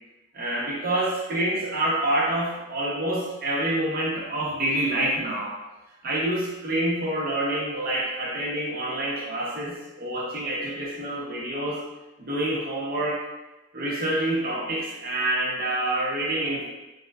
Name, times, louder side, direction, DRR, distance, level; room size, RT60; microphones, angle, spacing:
voice 1, 0.3-5.5 6.0-11.8 12.2-13.2 13.7-16.6, right 1 dB, 50° right, -5 dB, 0.9 m, -27 dB
4.4 x 2.4 x 2.2 m, 1.0 s
head